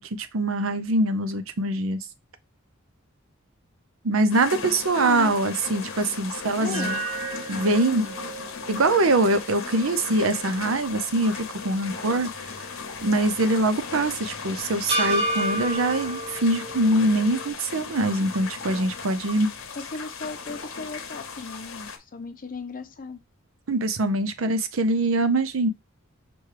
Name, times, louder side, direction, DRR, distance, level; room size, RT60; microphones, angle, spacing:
voice 1, 0.0-2.0 4.0-7.0 7.5-8.1 8.7-12.3 13.0-19.5 23.7-25.7, right 2 dB, 75° right, 0.6 m, -23 dB
sound 1, 4.3-22.0, left 5 dB, 80° left, 0.9 m, -37 dB
voice 2, 4.9-5.4 6.5-6.9 19.8-23.2, left 3 dB, 45° left, 0.6 m, -36 dB
sound 2, 6.7-11.0 11.4-11.5 14.9-17.5, right 2 dB, 30° right, 1.6 m, -31 dB
6.0 x 2.3 x 3.2 m
head